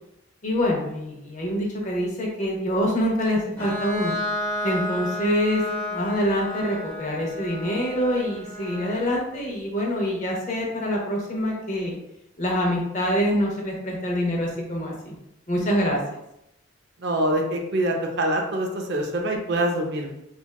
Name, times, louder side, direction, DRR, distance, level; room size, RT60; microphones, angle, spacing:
voice 1, 0.4-4.2 4.6-5.6 5.9-12.0 12.4-15.1 15.5-16.0, equal, 35° left, -1 dB, 0.6 m, -25 dB
Bowed string instrument, 3.6-9.2, left 2 dB, 5° left, 0.9 m, -32 dB
voice 2, 17.0-20.1, right 1 dB, 55° right, 2 dB, 0.4 m, -25 dB
3.3 x 2.2 x 2.3 m, 0.84 s
head